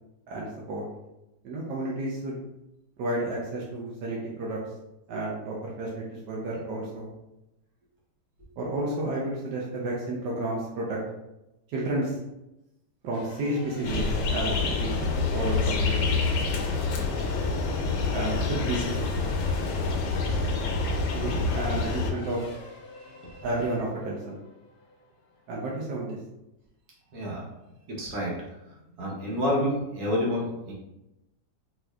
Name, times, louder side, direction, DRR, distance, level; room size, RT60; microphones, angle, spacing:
voice 1, 0.3-0.9 1.4-2.3 3.0-4.6 5.1-7.1 8.6-11.0 11.7-12.2 13.0-15.0 15.3-16.2 18.1-18.9 21.1-22.4 23.4-24.4 25.5-26.2, right 2 dB, 90° right, -4 dB, 1.3 m, -31 dB
Race car auto racing / Accelerating revving vroom / Mechanisms, 13.1-25.6, left 2 dB, 70° left, 1.2 m, -47 dB
sound 1, 13.8-22.1, left 4 dB, 85° left, 1.3 m, -27 dB
voice 2, 23.0-23.4 27.1-27.4 27.9-28.3 28.7-30.7, left 1 dB, 65° right, -3 dB, 1.3 m, -29 dB
4.3 x 2.6 x 2.3 m, 0.93 s
omnidirectional pair, 1.9 m